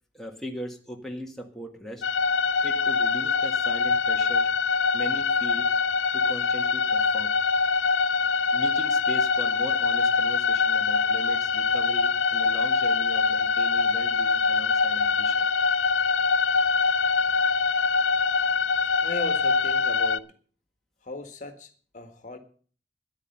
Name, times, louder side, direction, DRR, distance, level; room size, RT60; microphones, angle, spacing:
voice 1, 0.1-2.0 2.6-4.5 4.9-5.7 6.1-7.3 8.5-15.5, equal, ahead, 0 dB, 1.7 m, -39 dB
sound 1, 2.0-20.2, left 5 dB, 85° left, 0.5 m, -24 dB
voice 2, 19.0-20.3 21.0-22.4, left 2 dB, 40° left, 7 dB, 1.7 m, -37 dB
13.5 x 10.5 x 5.4 m, 0.42 s
head